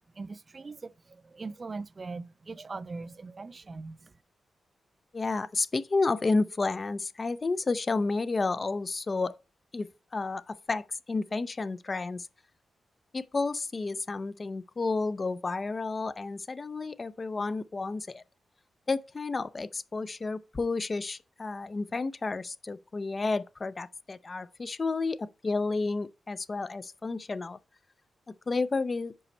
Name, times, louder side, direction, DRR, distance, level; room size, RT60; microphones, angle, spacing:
voice 1, 0.1-4.1, right 3 dB, 45° right, 0.3 m, -41 dB
voice 2, 5.1-9.3 9.7-12.3 13.1-18.2 18.9-27.6 28.3-29.1, left 3 dB, 45° left, 0.5 m, -31 dB
5.4 x 4.2 x 5.3 m
supercardioid pair, 50°, 0 cm